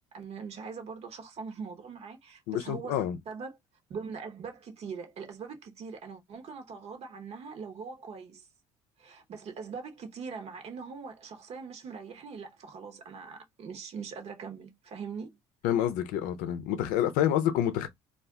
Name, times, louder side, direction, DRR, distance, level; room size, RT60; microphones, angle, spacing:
voice 1, 0.1-3.6 3.9-8.5 9.0-15.4, right 5 dB, 50° right, 0.9 m, -42 dB
voice 2, 2.5-3.2 15.6-17.9, left 11 dB, 80° left, 0.5 m, -28 dB
2.4 x 2.2 x 3.5 m
supercardioid pair, 80°, 14 cm